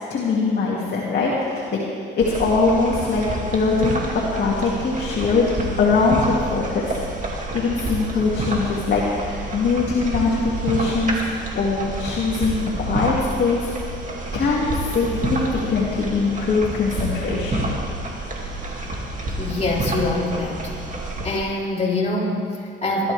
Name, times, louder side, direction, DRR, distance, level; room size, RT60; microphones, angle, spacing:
voice 1, 0.1-1.8 2.2-4.0 4.3-5.4 5.8-7.0 7.5-13.1 13.4-13.7 14.3-17.7, left 4 dB, 60° left, -5 dB, 2.5 m, -22 dB
sound 1, 2.2-21.4, right 2 dB, 40° right, 2.5 m, -29 dB
voice 2, 19.4-20.7 21.2-23.1, left 2 dB, 35° left, -4 dB, 3.7 m, -24 dB
21.5 x 13.0 x 3.5 m, 2.4 s
cardioid pair, 90°, 20 cm